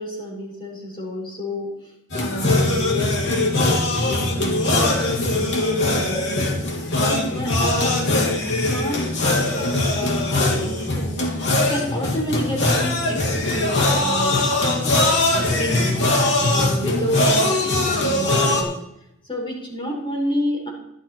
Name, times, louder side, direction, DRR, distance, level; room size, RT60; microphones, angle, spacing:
voice 1, 0.0-1.7 2.2-6.5 7.0-11.2 11.7-14.7 15.3-16.0 16.5-18.7 19.3-20.7, left 1 dB, 20° left, -4 dB, 5.2 m, -29 dB
sound 1, 2.1-18.6, left 2 dB, 50° left, 2.6 m, -21 dB
13.0 x 11.0 x 4.5 m, 0.82 s
head